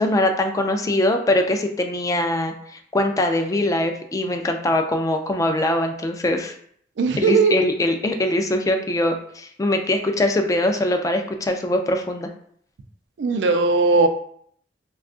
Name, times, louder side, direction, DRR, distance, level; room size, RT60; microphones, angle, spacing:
voice 1, 0.0-6.5 7.2-12.3, left 1 dB, 20° left, 5 dB, 0.3 m, -22 dB
voice 2, 7.0-7.6 13.2-14.1, right 4 dB, 80° right, 6 dB, 0.4 m, -18 dB
2.4 x 2.3 x 3.6 m, 0.63 s
head